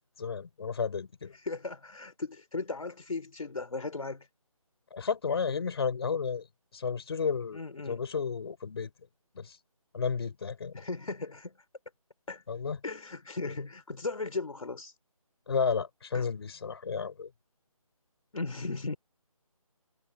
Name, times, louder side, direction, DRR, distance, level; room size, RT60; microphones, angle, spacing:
voice 1, 0.2-1.3 4.9-6.5 6.7-7.6 7.9-8.9 9.3-9.6 9.9-10.7 12.5-12.8 15.5-17.3, left 5 dB, 45° left, 4.5 m, -32 dB
voice 2, 1.3-4.3 7.5-8.0 10.7-11.5 12.3-12.4 12.8-14.9 16.1-16.3 18.3-19.0, left 3 dB, 70° left, 3.5 m, -37 dB
figure-of-eight pair, 165°, 19 cm